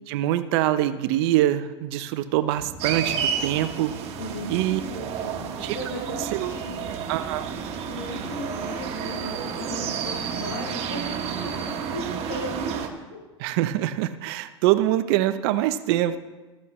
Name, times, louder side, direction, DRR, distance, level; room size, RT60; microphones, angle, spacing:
voice 1, 0.1-4.0 4.5-4.8 5.6-5.8 6.3-6.5 7.1-7.5 13.4-16.2, right 13 dB, 60° right, 12 dB, 0.7 m, -24 dB
sound 1, 2.5-12.8, right 1 dB, 5° right, 4.2 m, -42 dB
sound 2, 2.8-12.9, right 8 dB, 45° right, 1.5 m, -31 dB
voice 2, 4.2-6.9 7.8-12.8 13.1-13.2, left 1 dB, 90° left, -1 dB, 4.7 m, -36 dB
14.5 x 13.5 x 3.2 m, 1.2 s
hypercardioid pair, 95°, 15 cm